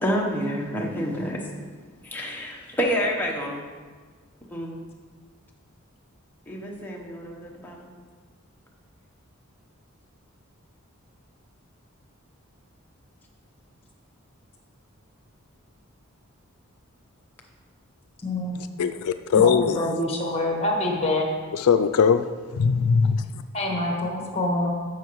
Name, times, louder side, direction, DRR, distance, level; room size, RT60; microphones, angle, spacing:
voice 1, 0.0-1.4 2.0-3.6 4.5-4.8 6.5-7.9, equal, 10° left, -2 dB, 0.9 m, -28 dB
voice 2, 18.2-18.6 19.3-21.3 23.5-24.7, left 1 dB, 25° left, 0 dB, 1.4 m, -26 dB
voice 3, 18.8-19.8 21.5-22.2 22.5-23.2, left 6 dB, 85° left, 10 dB, 0.4 m, -20 dB
11.0 x 7.1 x 3.1 m, 1.5 s
head